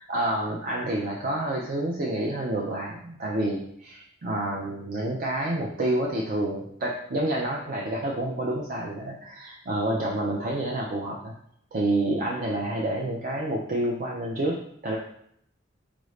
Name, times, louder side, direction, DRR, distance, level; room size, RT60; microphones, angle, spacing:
voice 1, 0.0-11.3 11.7-15.0, right 1 dB, 45° right, -2 dB, 0.4 m, -28 dB
4.8 x 2.5 x 3.1 m, 0.69 s
head